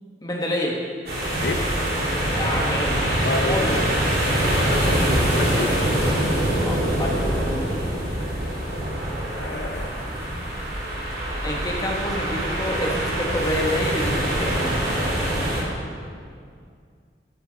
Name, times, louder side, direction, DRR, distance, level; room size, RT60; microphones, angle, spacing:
voice 1, 0.2-0.8 2.4-3.0 3.4-3.8 6.6-7.7 9.5-9.7 11.4-14.8, equal, 20° left, -1 dB, 1.2 m, -28 dB
sound 1, 1.1-15.6, right 1 dB, 55° right, 2.8 m, -24 dB
voice 2, 1.3-1.7 3.2-5.9 9.4-10.0, left 2 dB, 70° left, 5 dB, 0.9 m, -31 dB
14.0 x 9.9 x 3.9 m, 2.2 s
head